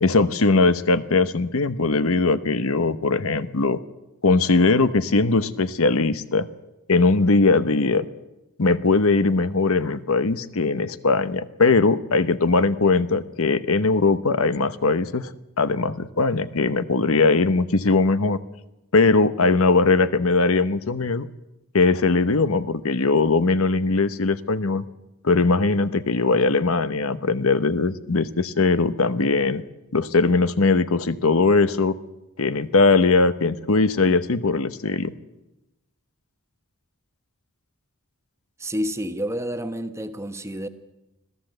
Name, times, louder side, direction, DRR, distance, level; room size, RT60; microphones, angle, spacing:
voice 1, 0.0-3.8 4.2-6.5 6.9-8.1 8.6-15.3 15.6-18.4 18.9-21.3 21.7-24.9 25.2-29.6 29.9-31.9 32.4-35.1, left 3 dB, 75° left, 1.0 m, -20 dB
voice 2, 38.6-40.7, equal, 10° right, 1.0 m, -29 dB
25.5 x 15.5 x 8.0 m
head